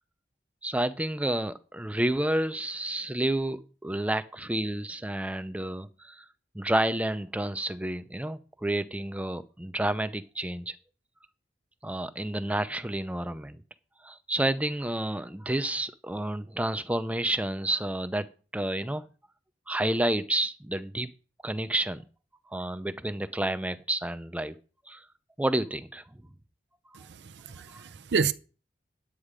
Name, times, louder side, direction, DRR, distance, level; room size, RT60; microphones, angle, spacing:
voice 1, 0.6-6.2 6.5-10.7 11.8-13.6 14.0-18.3 18.5-19.0 19.7-21.1 21.4-22.0 22.5-24.5 24.9-25.0 25.4-26.0, right 1 dB, 10° right, 0.6 m, -30 dB
voice 2, 26.9-28.3, right 5 dB, 75° right, 0.6 m, -30 dB
9.8 x 8.6 x 5.1 m
head